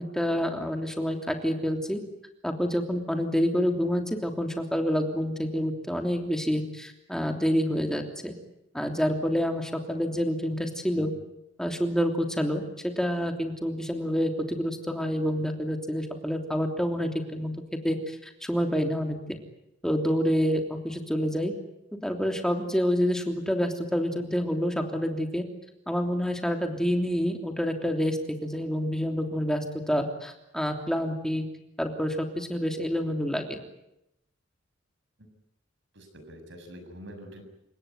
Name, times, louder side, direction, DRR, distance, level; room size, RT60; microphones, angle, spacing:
voice 1, 0.0-2.0 2.4-8.3 8.7-11.1 11.6-19.4 19.8-21.5 22.0-25.4 25.9-31.5 31.8-33.6, equal, 5° left, 4 dB, 3.2 m, -28 dB
voice 2, 35.9-37.4, equal, 70° right, 7 dB, 6.7 m, -45 dB
29.5 x 17.5 x 9.6 m, 0.85 s
head